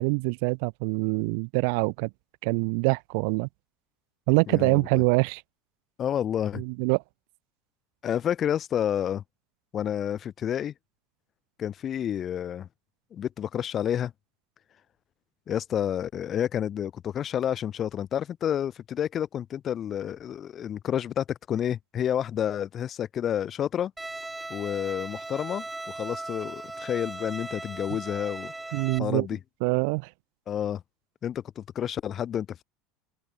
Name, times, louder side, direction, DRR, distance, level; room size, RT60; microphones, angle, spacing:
voice 1, 0.0-2.1 2.4-3.5 4.3-5.4 6.6-7.0 28.7-29.3 29.6-30.1, right 36 dB, 70° right, 1.7 m, -25 dB
voice 2, 4.5-5.0 6.0-6.6 8.0-9.2 9.7-10.7 11.6-12.7 13.1-14.1 15.5-23.9 24.5-28.5 29.0-29.4 30.5-30.8 31.2-32.6, left 9 dB, 35° left, 5.2 m, -30 dB
Bowed string instrument, 24.0-29.0, right 2 dB, 10° right, 4.3 m, -38 dB
open air
supercardioid pair, 135°, 0 cm